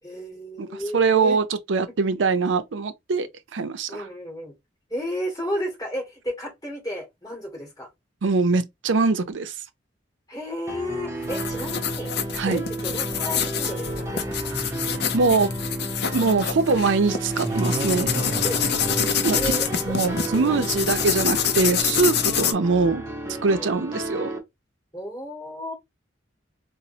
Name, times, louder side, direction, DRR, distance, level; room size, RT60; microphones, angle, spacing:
voice 1, 0.0-1.4 3.9-4.5 4.9-7.9 10.3-12.1 12.4-14.5 18.4-18.6 19.3-19.9 20.3-20.8 22.4-22.6 23.5-23.8 24.9-25.7, equal, 20° left, 2.3 m, -33 dB
voice 2, 0.9-4.0 8.2-9.5 12.3-12.6 15.1-15.5 16.1-18.1 19.2-19.4 19.9-23.0 23.4-24.3, right 4 dB, 80° right, 0.5 m, -22 dB
sound 1, 10.7-24.4, right 1 dB, 15° right, 0.7 m, -33 dB
sound 2, 11.2-22.5, left 7 dB, 60° left, 0.5 m, -27 dB
sound 3, 17.4-19.9, right 2 dB, 30° right, 0.3 m, -32 dB
4.1 x 2.1 x 2.7 m
head